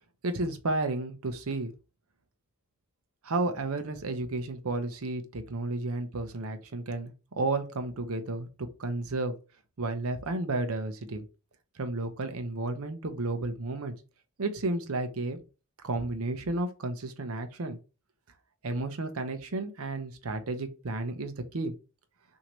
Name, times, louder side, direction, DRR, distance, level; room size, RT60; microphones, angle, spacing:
voice 1, 0.2-1.7 3.2-8.5 8.8-9.3 9.8-11.3 11.8-13.9 14.4-15.4 15.8-17.8 18.6-21.7, right 2 dB, 80° right, 0.7 m, -32 dB
6.0 x 2.8 x 3.1 m
head